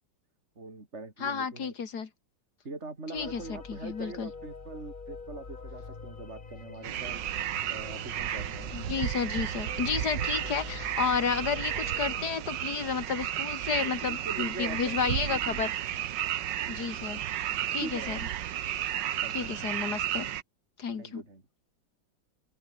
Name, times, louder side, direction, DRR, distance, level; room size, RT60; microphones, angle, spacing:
voice 1, 0.6-1.7 2.6-7.2 7.7-8.7 14.1-15.6 17.8-18.3 19.2-19.6 21.0-21.4, right 3 dB, 35° right, 4.3 m, -42 dB
voice 2, 1.2-2.1 3.1-4.3 8.7-15.7 16.7-17.2 17.7-18.2 19.3-20.3 20.8-21.2, left 6 dB, 60° left, 2.5 m, -32 dB
sound 1, 3.1-12.3, left 4 dB, 30° left, 1.5 m, -45 dB
sound 2, 6.8-20.4, right 11 dB, 75° right, 1.6 m, -33 dB
omnidirectional pair, 2.0 m